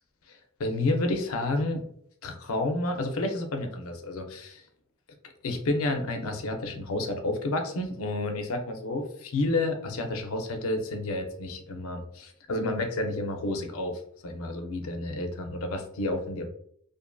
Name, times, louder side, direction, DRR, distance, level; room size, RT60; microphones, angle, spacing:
voice 1, 0.6-1.8 2.2-4.6 5.4-16.5, left 2 dB, 85° left, 5 dB, 0.5 m, -30 dB
2.5 x 2.5 x 2.2 m, 0.65 s
head